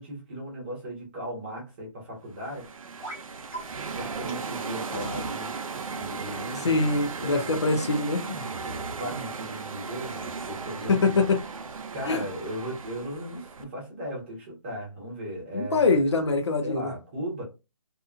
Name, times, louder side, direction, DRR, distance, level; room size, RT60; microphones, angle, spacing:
voice 1, 0.0-2.7 3.9-5.5 5.8-6.8 7.2-7.8 8.6-11.2 11.9-16.3 16.6-17.4, equal, 20° right, 0.9 m, -37 dB
sound 1, 2.3-13.6, right 5 dB, 75° right, 0.5 m, -36 dB
sound 2, 3.0-3.2 3.5-3.6 4.3-4.4 4.9-5.4 6.6-7.1 8.2-9.0, equal, 10° left, 0.7 m, -39 dB
voice 2, 6.6-8.2 10.9-11.4 12.1-12.2 15.5-16.9, left 3 dB, 55° left, 0.5 m, -23 dB
2.8 x 2.2 x 2.5 m
hypercardioid pair, 165°, 18 cm